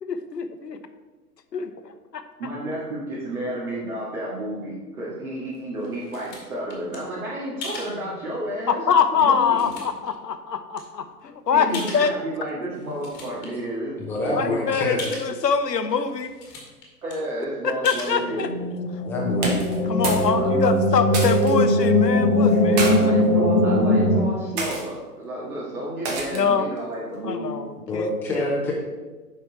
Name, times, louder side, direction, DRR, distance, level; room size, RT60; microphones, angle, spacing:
voice 1, 0.0-0.8 1.5-2.2 8.7-12.1 14.3-16.3 17.6-18.5 19.9-23.5 26.3-26.7 27.2-28.5, left 6 dB, 80° left, 10 dB, 0.8 m, -24 dB
voice 2, 2.4-9.7 11.5-15.0 17.0-18.6 20.3-20.8 22.8-27.6, right 1 dB, 60° right, -7 dB, 2.2 m, -31 dB
sound 1, 5.5-7.0 7.6-7.9 8.6-8.7 9.2-10.1 10.8-10.9 11.7-12.4 12.7-13.5 13.9-14.0 14.2-14.3 15.0-15.3 15.9-16.0 16.2-16.8 17.1-17.2 17.9-18.2, left 3 dB, 20° left, 1.6 m, -37 dB
voice 3, 14.0-15.1 19.0-19.7 27.9-28.7, left 1 dB, 5° left, -4 dB, 0.6 m, -27 dB
sound 2, 18.2-24.2, left 1 dB, 50° left, 1.1 m, -20 dB
sound 3, 19.3-20.3 20.6-21.5 22.4-22.9 23.7-24.0 24.6-24.8 26.0-26.5, right 2 dB, 25° right, 1.2 m, -28 dB
7.2 x 5.3 x 4.2 m, 1.3 s
figure-of-eight pair, 120°, 49 cm